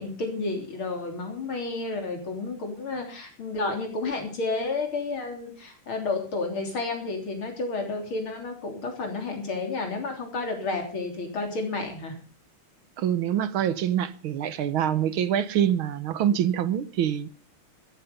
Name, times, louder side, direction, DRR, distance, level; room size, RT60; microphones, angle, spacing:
voice 1, 0.0-12.1, left 3 dB, 70° left, 4.2 m, -31 dB
voice 2, 13.0-17.3, right 10 dB, 70° right, 1.7 m, -25 dB
14.5 x 12.5 x 5.4 m
omnidirectional pair, 2.4 m